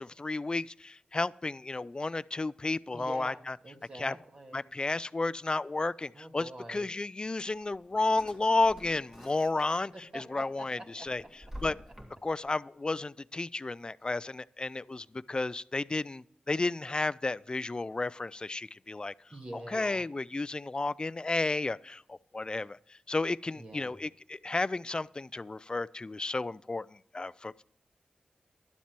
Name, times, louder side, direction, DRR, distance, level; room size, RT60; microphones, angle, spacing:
voice 1, 0.0-3.6 4.0-4.1 4.5-11.2 11.6-11.8 12.2-19.1 19.5-27.6, left 3 dB, 35° left, 19 dB, 0.3 m, -32 dB
voice 2, 2.9-4.7 6.1-6.9 9.9-11.1 19.3-20.0 23.6-23.9, right 1 dB, 40° right, 1 dB, 1.8 m, -46 dB
Drawer open or close, 7.5-10.0 10.4-12.5, equal, 20° right, 2.1 m, -49 dB
11.5 x 7.3 x 4.5 m, 0.71 s
cardioid pair, 55°, 3 cm